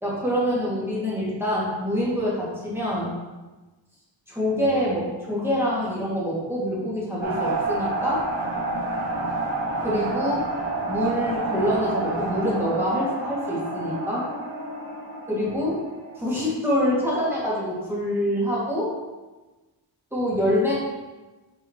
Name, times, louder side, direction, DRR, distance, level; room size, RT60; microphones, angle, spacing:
voice 1, 0.0-3.1 4.3-8.3 9.8-10.5 10.9-14.3 15.3-15.8 16.2-18.9 20.1-20.8, equal, 5° right, -7 dB, 1.8 m, -25 dB
sound 1, 7.2-16.2, right 2 dB, 85° right, 1.7 m, -29 dB
7.1 x 5.2 x 2.9 m, 1.2 s
wide cardioid pair, 160°, 46 cm